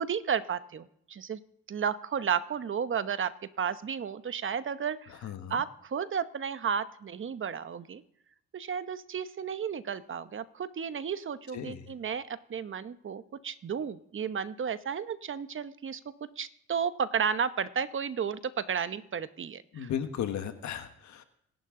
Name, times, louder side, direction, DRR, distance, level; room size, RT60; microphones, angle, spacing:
voice 1, 0.0-1.4 1.7-3.3 3.6-5.2 5.5-8.0 8.5-16.0 16.4-19.9, right 7 dB, 40° right, 12 dB, 0.9 m, -33 dB
voice 2, 5.1-5.6 11.5-11.9 19.7-21.2, left 9 dB, 70° left, 8 dB, 1.4 m, -36 dB
26.5 x 11.0 x 3.8 m, 0.72 s
cardioid pair, 90°, 30 cm